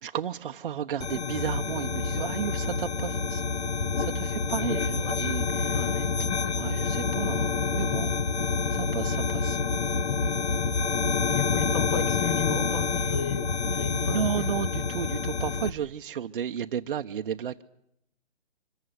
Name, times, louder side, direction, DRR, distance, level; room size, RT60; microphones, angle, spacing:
voice 1, 0.0-3.4 4.0-6.0 6.6-8.2 8.7-9.6 13.9-17.6, right 8 dB, 55° right, 0.9 m, -33 dB
sound 1, 1.0-15.7, left 4 dB, 80° left, 1.5 m, -28 dB
voice 2, 4.6-5.2 5.7-6.6 7.9-8.0 10.1-10.4 11.3-14.8, left 7 dB, 30° left, 1.9 m, -35 dB
25.0 x 14.5 x 9.9 m
hypercardioid pair, 150°, 32 cm